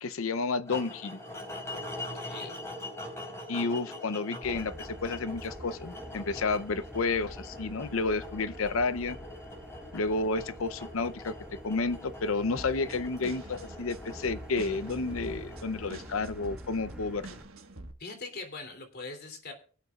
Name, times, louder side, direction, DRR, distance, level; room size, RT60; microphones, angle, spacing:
voice 1, 0.0-1.2 3.5-9.2 9.9-11.4 11.6-17.2, left 3 dB, 70° left, 0.7 m, -31 dB
sound 1, 0.7-16.8, left 1 dB, 15° left, 4.0 m, -43 dB
voice 2, 1.9-2.6 18.0-19.5, left 3 dB, 50° left, 3.0 m, -42 dB
Motor vehicle (road), 4.4-17.4, equal, 5° right, 1.5 m, -47 dB
sound 2, 12.6-17.9, right 2 dB, 75° right, 1.5 m, -46 dB
23.5 x 8.1 x 2.4 m
head